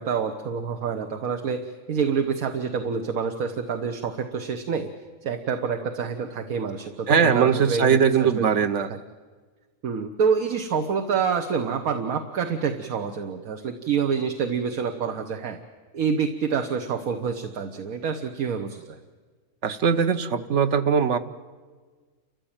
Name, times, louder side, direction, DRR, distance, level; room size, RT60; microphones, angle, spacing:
voice 1, 0.0-4.9 5.2-8.4 8.9-9.0 9.8-15.6 15.9-19.0, right 6 dB, 75° right, 6 dB, 1.5 m, -27 dB
voice 2, 7.1-8.9 19.6-21.2, right 6 dB, 55° right, 10 dB, 1.2 m, -20 dB
29.5 x 14.5 x 8.8 m, 1.5 s
omnidirectional pair, 1.5 m